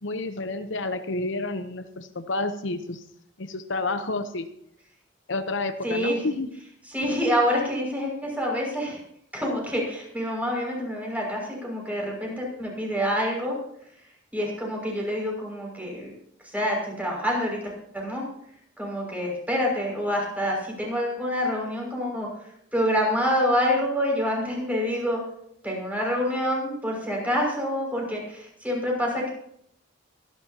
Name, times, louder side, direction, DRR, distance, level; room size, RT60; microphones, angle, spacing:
voice 1, 0.0-3.0 3.4-4.5 5.3-6.5, left 2 dB, 70° left, 9 dB, 0.9 m, -30 dB
voice 2, 5.8-6.2 6.9-9.0 9.3-13.5 14.3-16.1 16.4-18.2 18.8-22.3 22.7-25.2 25.6-29.3, equal, 10° right, -1 dB, 6.1 m, -27 dB
24.5 x 12.0 x 2.9 m, 0.70 s
head